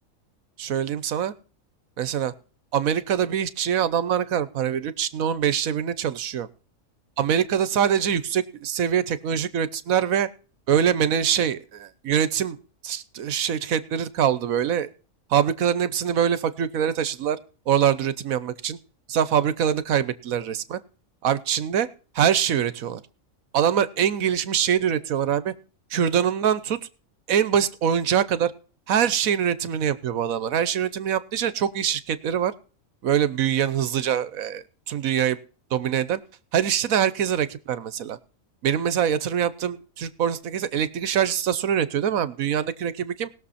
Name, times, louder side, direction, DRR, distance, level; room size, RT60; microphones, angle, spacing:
voice 1, 0.6-1.3 2.0-2.3 2.7-6.5 7.2-10.3 10.7-12.6 12.8-14.9 15.3-17.4 17.7-18.8 19.1-20.8 21.2-21.9 22.1-23.0 23.5-25.5 25.9-26.9 27.3-28.5 28.9-32.5 33.0-35.4 35.7-36.2 36.5-38.2 38.6-43.3, right 9 dB, 75° right, 16 dB, 1.3 m, -24 dB
20.0 x 6.9 x 4.2 m, 0.38 s
omnidirectional pair, 1.4 m